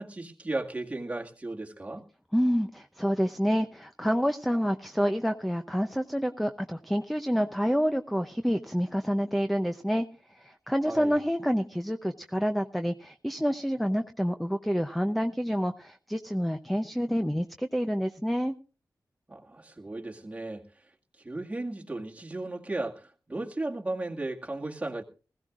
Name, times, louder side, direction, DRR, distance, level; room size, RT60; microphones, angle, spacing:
voice 1, 0.0-2.0 10.8-11.2 19.3-20.7 21.2-25.0, right 2 dB, 20° right, 2.0 m, -35 dB
voice 2, 2.3-10.1 10.3-18.5, equal, ahead, 0.6 m, -28 dB
20.5 x 15.5 x 2.4 m
wide cardioid pair, 115°, 7 cm